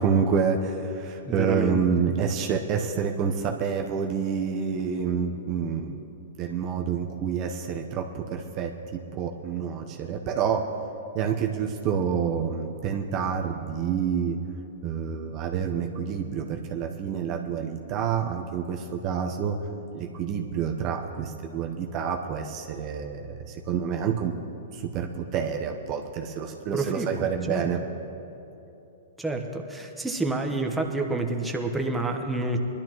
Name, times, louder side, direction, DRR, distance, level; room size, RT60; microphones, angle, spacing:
voice 1, 0.0-6.0 6.4-10.7 11.1-14.4 14.8-19.6 19.9-24.4 24.7-27.8, right 7 dB, 40° right, 2 dB, 0.9 m, -28 dB
voice 2, 1.2-1.8 2.1-2.2 26.7-27.1 27.5-27.7 29.2-32.6, right 2 dB, 5° right, 1 dB, 1.1 m, -28 dB
21.0 x 11.5 x 3.1 m, 2.9 s
hypercardioid pair, 115°, 0 cm